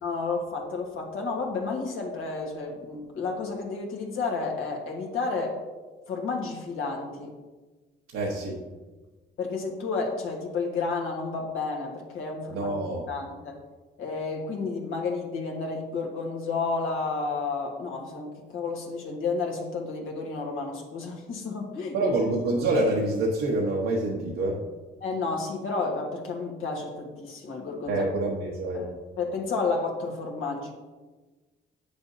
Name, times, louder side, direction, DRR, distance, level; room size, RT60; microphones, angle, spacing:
voice 1, 0.0-5.6 6.1-7.3 9.4-12.7 13.1-13.6 14.0-22.1 25.0-28.0 28.7-28.8 29.2-30.7, left 4 dB, 75° left, 0 dB, 1.6 m, -31 dB
voice 2, 8.1-8.6 12.5-13.1 21.9-24.6 27.8-28.9, right 2 dB, 85° right, -3 dB, 1.2 m, -26 dB
8.5 x 6.8 x 2.8 m, 1.3 s
cardioid pair, 80°, 21 cm